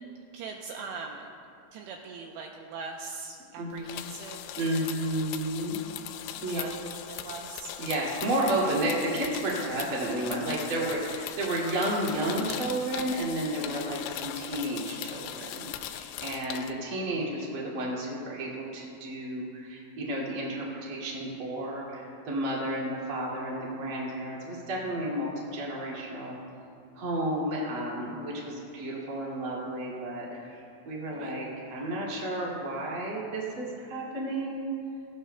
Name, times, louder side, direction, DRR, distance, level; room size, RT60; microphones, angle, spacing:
voice 1, 0.3-1.3 1.7-5.0 6.5-7.7 31.1-31.4, right 4 dB, 80° right, 1 dB, 2.7 m, -41 dB
voice 2, 3.6-4.1 4.6-5.8 6.1-6.6 7.8-26.4 27.0-34.7, right 1 dB, 40° right, -4 dB, 2.2 m, -32 dB
sound 1, 3.8-16.7, left 11 dB, 85° left, 2.9 m, -39 dB
17.5 x 16.0 x 2.2 m, 2.4 s
omnidirectional pair, 5.3 m